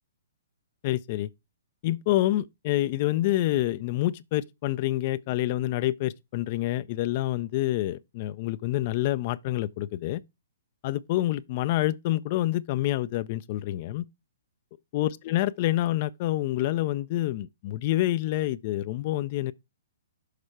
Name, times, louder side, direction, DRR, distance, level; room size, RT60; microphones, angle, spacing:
voice 1, 0.8-1.3 1.8-10.2 10.8-14.0 14.9-19.5, left 15 dB, 40° left, 0.3 m, -27 dB
6.6 x 4.3 x 4.5 m
figure-of-eight pair, 120°, 0 cm